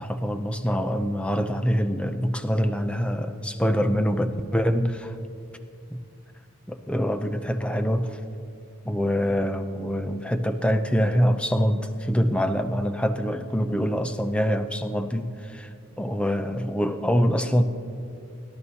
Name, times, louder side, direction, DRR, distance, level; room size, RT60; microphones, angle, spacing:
voice 1, 0.0-5.2 5.9-6.0 6.7-8.2 8.9-17.6, equal, 5° left, 7 dB, 0.5 m, -25 dB
23.5 x 12.5 x 2.8 m, 2.5 s
head